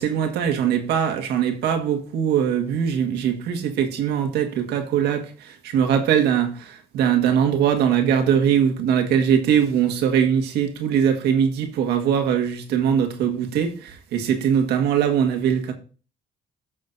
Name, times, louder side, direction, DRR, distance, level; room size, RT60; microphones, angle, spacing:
voice 1, 0.0-15.7, right 8 dB, 75° right, 1.7 m, -21 dB
15.0 x 6.4 x 2.7 m
cardioid pair, 110°, 17 cm